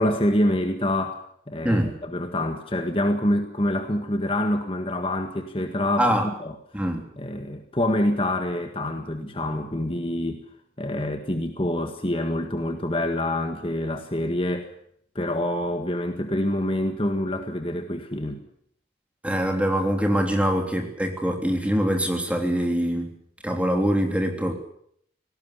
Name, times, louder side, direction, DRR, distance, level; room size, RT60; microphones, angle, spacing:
voice 1, 0.0-6.6 7.2-10.4 10.8-14.7 15.1-18.4, left 1 dB, 30° left, 6 dB, 1.7 m, -26 dB
voice 2, 19.2-23.1 23.4-24.5, equal, 5° right, 3 dB, 3.3 m, -23 dB
18.5 x 18.5 x 9.9 m, 0.69 s
head